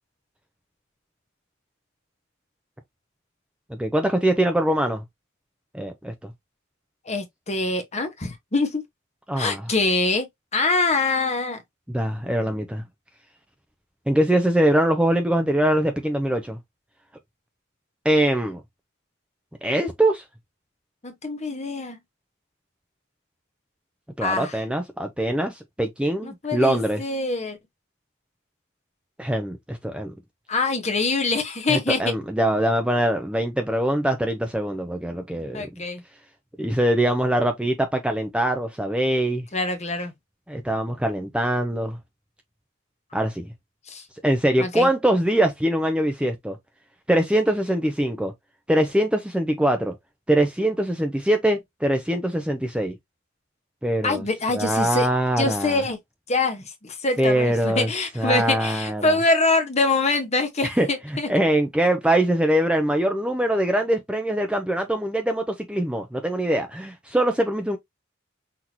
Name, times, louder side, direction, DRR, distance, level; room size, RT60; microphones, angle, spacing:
voice 1, 3.7-5.0 5.7-6.3 9.3-9.6 11.9-12.8 14.1-16.6 18.0-18.6 19.6-20.2 24.2-27.0 29.2-30.1 31.7-35.8 36.6-39.5 40.5-42.0 43.1-43.5 44.2-46.6 47.1-48.3 48.7-49.9 50.3-53.0 53.8-54.2 54.5-55.8 57.2-57.9 58.2-59.2 60.6-60.9 61.3-67.8, right 1 dB, 5° right, 0.5 m, -23 dB
voice 2, 7.1-8.8 9.4-11.6 21.0-22.0 24.2-24.6 26.2-27.6 30.5-32.1 35.5-36.0 39.5-40.1 43.9-44.0 44.6-44.9 54.0-55.1 55.4-56.0 56.3-61.3, left 3 dB, 30° left, 1.0 m, -24 dB
5.9 x 2.9 x 2.9 m
head